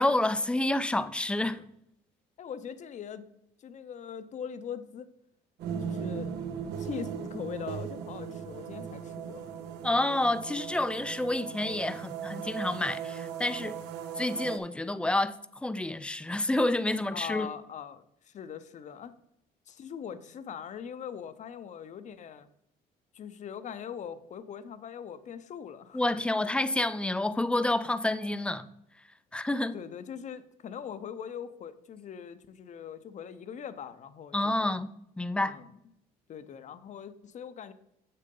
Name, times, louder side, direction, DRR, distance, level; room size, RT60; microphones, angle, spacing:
voice 1, 0.0-1.6 9.8-13.8 14.2-15.4 15.6-17.5 25.9-28.7 29.3-29.8 34.3-34.9 35.2-35.6, left 1 dB, 5° left, 0.4 m, -28 dB
voice 2, 2.4-3.3 3.6-5.1 5.8-6.4 6.8-9.5 17.1-19.1 19.7-22.5 23.1-26.0 29.7-34.6 35.4-35.7 36.3-37.7, left 8 dB, 45° left, 0.6 m, -41 dB
sound 1, 5.6-14.6, right 7 dB, 85° right, 0.7 m, -38 dB
7.4 x 6.6 x 3.8 m
cardioid pair, 110°, 17 cm